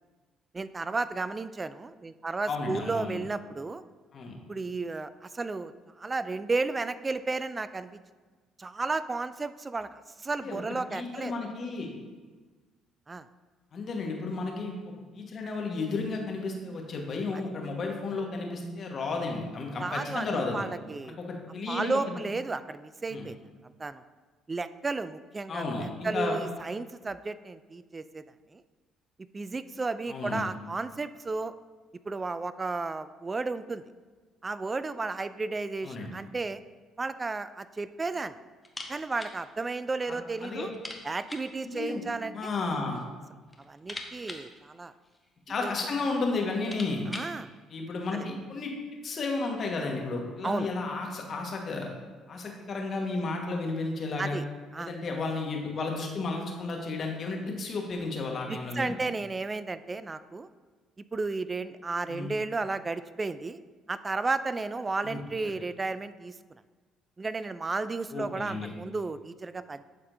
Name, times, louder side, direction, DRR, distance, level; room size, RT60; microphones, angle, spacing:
voice 1, 0.5-3.8 4.5-5.7 6.0-8.0 8.6-11.3 13.1-13.3 17.3-17.4 19.8-21.1 21.7-23.4 23.8-24.0 24.5-28.2 28.5-28.6 29.2-31.5 32.0-33.8 34.4-36.6 37.0-38.4 38.9-40.7 41.0-42.5 43.6-44.9 45.6-45.7 47.1-47.5 48.1-48.3 50.4-50.7 54.2-54.4 54.7-54.9 58.5-60.5 61.1-63.6 63.9-66.4 67.2-69.8, right 3 dB, 30° right, 14 dB, 0.3 m, -33 dB
voice 2, 2.5-3.2 4.1-4.3 10.4-10.6 10.9-11.9 13.7-14.7 15.1-20.6 21.0-22.2 23.1-23.2 25.5-26.3 30.1-30.5 35.8-36.1 40.1-40.7 41.7-42.0 42.3-43.0 45.5-47.0 47.7-48.7 49.0-51.9 52.3-54.4 54.8-59.0 62.1-62.3 65.0-65.2 68.1-68.7, left 3 dB, 50° left, 1 dB, 1.4 m, -33 dB
sound 1, 38.6-39.4 39.7-39.8 40.1-40.2 40.7-41.6 42.5-43.1 43.4-45.4 46.1-46.2 46.5-47.4, left 1 dB, 10° left, 1.1 m, -43 dB
11.5 x 4.2 x 2.7 m, 1.4 s
hypercardioid pair, 60°, 0 cm